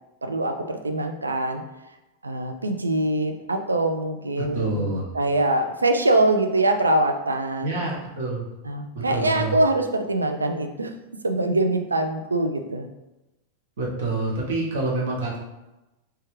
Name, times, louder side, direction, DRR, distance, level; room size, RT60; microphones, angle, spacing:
voice 1, 0.2-1.6 2.2-7.9 8.6-10.9 11.2-12.9, right 2 dB, 80° right, 5 dB, 0.3 m, -23 dB
voice 2, 4.5-5.1 7.6-8.4 8.9-9.6 13.8-15.4, right 2 dB, 60° right, -2 dB, 0.8 m, -27 dB
3.2 x 2.3 x 3.1 m, 1.0 s
figure-of-eight pair, 90°, 0 cm